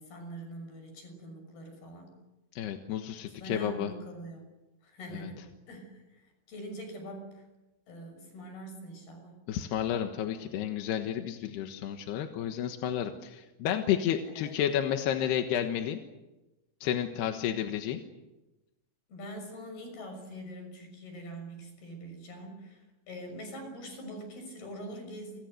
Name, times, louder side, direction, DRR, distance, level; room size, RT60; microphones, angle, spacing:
voice 1, 0.0-2.1 3.2-4.4 4.8-5.9 6.5-7.4 7.9-9.4 14.3-14.5 19.1-22.8 23.1-25.4, right 1 dB, 50° left, 5 dB, 8.1 m, -43 dB
voice 2, 2.6-3.9 5.1-5.3 9.5-16.0 16.8-18.0, left 10 dB, 65° left, 5 dB, 3.0 m, -31 dB
30.0 x 24.5 x 6.7 m, 1.0 s
omnidirectional pair, 5.8 m